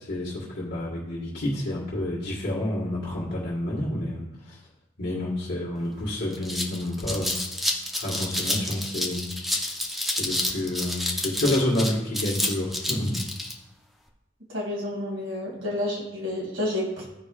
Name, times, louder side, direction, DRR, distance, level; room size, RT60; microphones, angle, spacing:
voice 1, 0.1-4.6 5.0-7.4 8.0-9.4 10.0-13.2, left 1 dB, 55° left, -8 dB, 1.6 m, -29 dB
sound 1, 5.8-5.9 6.2-13.5, left 1 dB, ahead, 0.7 m, -29 dB
voice 2, 14.5-17.1, left 1 dB, 70° right, -3 dB, 2.5 m, -30 dB
14.0 x 5.0 x 2.4 m, 0.90 s
head